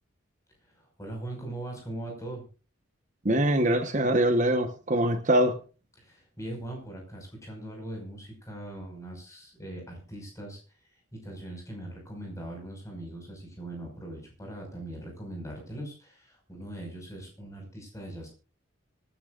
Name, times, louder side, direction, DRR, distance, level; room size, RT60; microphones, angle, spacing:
voice 1, 0.6-2.4 6.0-10.6 11.2-18.3, right 1 dB, 15° left, 1 dB, 5.5 m, -40 dB
voice 2, 3.2-5.6, right 1 dB, 40° right, 7 dB, 1.1 m, -23 dB
25.5 x 10.0 x 2.5 m, 0.34 s
head